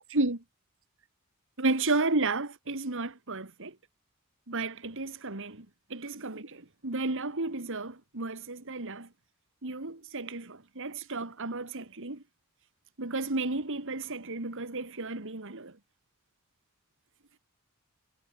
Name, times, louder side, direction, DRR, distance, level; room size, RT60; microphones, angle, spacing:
voice 1, 0.1-0.4 1.6-3.8 4.5-9.1 9.6-12.2 13.0-15.8, right 2 dB, 60° right, 2.4 m, -32 dB
head